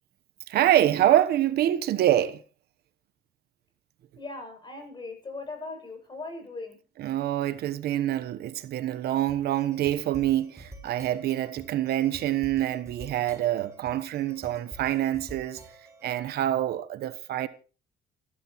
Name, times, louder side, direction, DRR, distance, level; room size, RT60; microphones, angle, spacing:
voice 1, 0.5-2.4 7.0-15.6 16.0-17.5, right 12 dB, 70° right, 1.1 m, -26 dB
voice 2, 4.2-6.8, left 3 dB, 25° left, 7.7 m, -39 dB
sound 1, 9.3-16.1, right 2 dB, 15° right, 5.2 m, -48 dB
28.0 x 12.5 x 3.1 m
cardioid pair, 110°, 17 cm